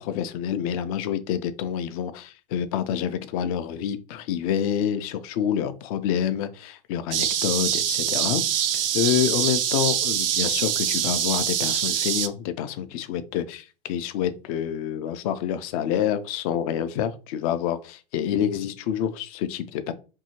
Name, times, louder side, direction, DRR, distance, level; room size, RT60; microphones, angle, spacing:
voice 1, 0.0-19.9, left 9 dB, 40° left, 0.4 m, -27 dB
sound 1, 7.1-12.3, right 9 dB, 75° right, 0.4 m, -24 dB
2.7 x 2.7 x 2.8 m
hypercardioid pair, 100°, 29 cm